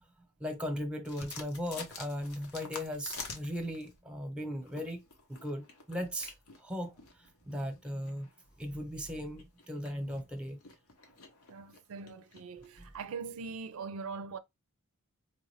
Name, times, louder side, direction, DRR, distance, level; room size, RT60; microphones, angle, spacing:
voice 1, 0.4-5.0 5.3-6.3 6.6-6.9 7.5-8.3 8.6-10.6, equal, 5° right, 0.9 m, -37 dB
sound 1, 1.1-4.0 4.5-13.1, left 4 dB, 85° left, 1.1 m, -49 dB
voice 2, 11.5-14.4, right 5 dB, 70° right, 0.4 m, -42 dB
4.6 x 2.5 x 3.1 m
head